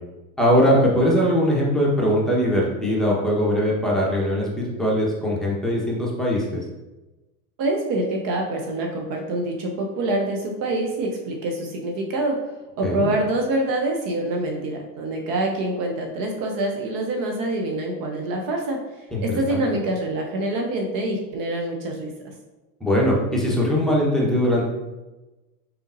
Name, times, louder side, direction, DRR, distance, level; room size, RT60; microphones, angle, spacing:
voice 1, 0.4-6.6 12.8-13.1 19.1-19.2 19.5-19.6 22.8-24.7, equal, ahead, -5 dB, 1.1 m, -21 dB
voice 2, 7.6-12.4 12.8-18.8 19.2-22.1, right 1 dB, 45° right, 2 dB, 0.8 m, -25 dB
4.3 x 3.7 x 2.6 m, 1.1 s
hypercardioid pair, 100°, 48 cm